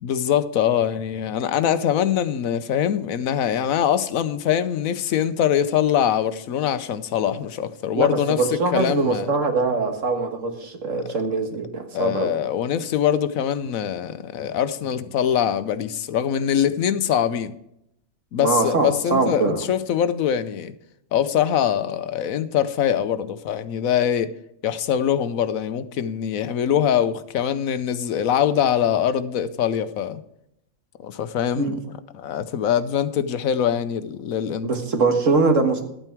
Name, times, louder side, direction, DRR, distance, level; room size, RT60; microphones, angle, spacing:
voice 1, 0.0-8.4 8.7-9.3 11.9-17.5 18.3-20.7 21.1-24.3 24.6-30.2 31.0-31.8 32.1-34.7, left 9 dB, 75° left, 1.1 m, -23 dB
voice 2, 7.9-12.4 18.4-19.6 31.6-31.8 34.6-35.8, right 3 dB, 60° right, 1.8 m, -22 dB
12.5 x 9.0 x 4.6 m
omnidirectional pair, 1.5 m